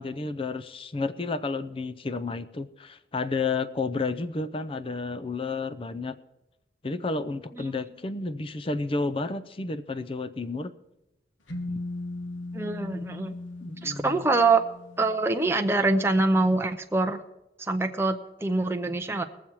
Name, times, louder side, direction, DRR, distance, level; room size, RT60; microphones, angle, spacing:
voice 1, 0.0-6.2 6.8-10.7 13.6-14.3, left 3 dB, 30° left, 12 dB, 0.5 m, -31 dB
sound 1, 11.5-15.3, left 2 dB, 90° left, 1.4 m, -38 dB
voice 2, 12.5-13.3 13.8-14.6 15.0-17.2 17.7-19.2, right 3 dB, 15° right, 4 dB, 0.6 m, -24 dB
20.5 x 7.2 x 4.6 m, 0.95 s
head